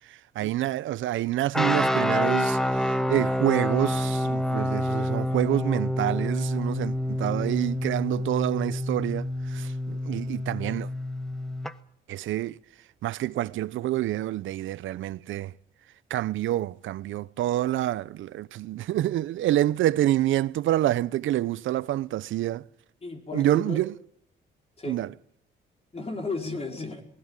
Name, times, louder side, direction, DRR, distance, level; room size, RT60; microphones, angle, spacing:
voice 1, 0.4-2.6 3.1-10.9 12.1-12.6 13.0-15.5 16.1-22.6 23.3-23.9 24.8-25.1, right 14 dB, 75° right, 0.7 m, -27 dB
sound 1, 1.5-11.7, left 1 dB, ahead, 1.1 m, -27 dB
voice 2, 23.0-23.8 24.8-25.0 25.9-27.0, left 3 dB, 30° left, 4.9 m, -34 dB
20.5 x 16.0 x 9.0 m
cardioid pair, 90°, 20 cm